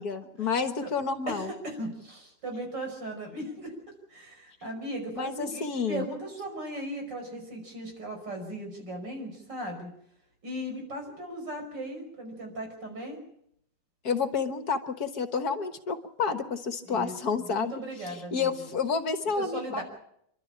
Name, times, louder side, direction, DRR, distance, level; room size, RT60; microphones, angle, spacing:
voice 1, 0.0-1.5 5.2-6.1 14.0-17.7 18.0-19.8, left 5 dB, 55° left, 9 dB, 1.7 m, -30 dB
voice 2, 1.3-3.8 4.1-9.9 10.4-13.2 16.9-18.7 19.4-19.8, right 1 dB, 70° right, 3 dB, 6.2 m, -37 dB
27.5 x 12.5 x 8.6 m, 0.73 s
omnidirectional pair, 2.0 m